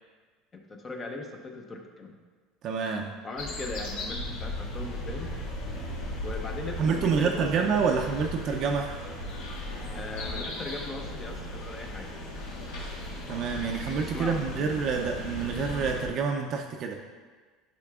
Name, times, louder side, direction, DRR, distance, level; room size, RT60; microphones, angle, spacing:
voice 1, 0.5-2.1 3.2-5.4 6.2-8.0 9.9-12.1 14.1-14.8, left 2 dB, 25° left, 2 dB, 0.7 m, -39 dB
voice 2, 2.6-3.1 6.8-9.0 13.3-17.0, right 5 dB, 45° right, 2 dB, 0.5 m, -27 dB
sound 1, 3.4-16.1, left 1 dB, 75° left, 1.7 m, -36 dB
10.5 x 5.7 x 2.4 m, 1.4 s
cardioid pair, 140°, 0 cm